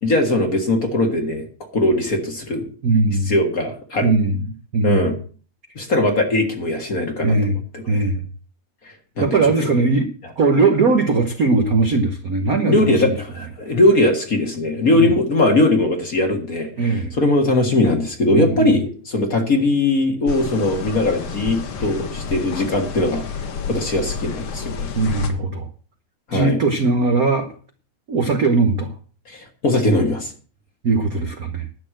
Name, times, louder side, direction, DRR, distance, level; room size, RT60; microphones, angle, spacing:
voice 1, 0.0-1.4 1.7-2.7 3.2-4.1 4.8-5.2 5.7-7.9 8.8-9.7 12.6-24.9 26.3-26.6 29.3-30.3, left 2 dB, 35° left, 4 dB, 1.6 m, -20 dB
voice 2, 2.8-3.4 4.0-5.1 7.2-7.6 7.9-8.2 9.2-10.1 10.4-13.1 14.9-15.1 16.8-17.1 18.3-18.7 24.9-25.7 26.3-27.5 28.1-28.9 30.8-31.7, right 3 dB, 70° right, 5 dB, 0.8 m, -19 dB
sound 1, 20.3-25.3, left 5 dB, 60° left, 2.2 m, -29 dB
11.5 x 6.6 x 7.7 m, 0.41 s
omnidirectional pair, 3.3 m